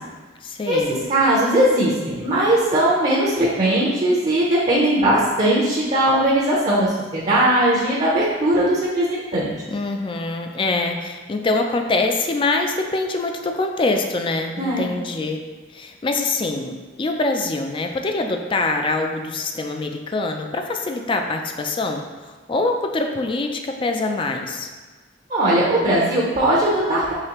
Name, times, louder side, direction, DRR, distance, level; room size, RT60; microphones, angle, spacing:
voice 1, 0.4-1.0 9.7-15.4 15.7-24.7, left 3 dB, 30° left, 4 dB, 0.3 m, -24 dB
voice 2, 1.1-9.5 14.6-14.9 25.3-27.1, right 1 dB, 35° right, -6 dB, 0.7 m, -19 dB
4.8 x 3.2 x 2.9 m, 1.4 s
head